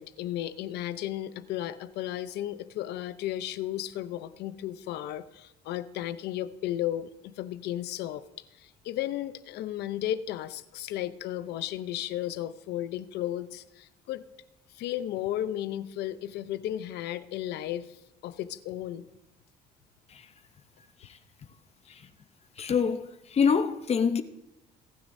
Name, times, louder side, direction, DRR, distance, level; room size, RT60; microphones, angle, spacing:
voice 1, 0.0-8.2 8.5-14.2 14.7-19.1, left 12 dB, 80° left, 0.7 m, -34 dB
voice 2, 22.6-24.2, left 6 dB, 40° left, 0.7 m, -25 dB
28.0 x 9.5 x 2.7 m
cardioid pair, 110°, 17 cm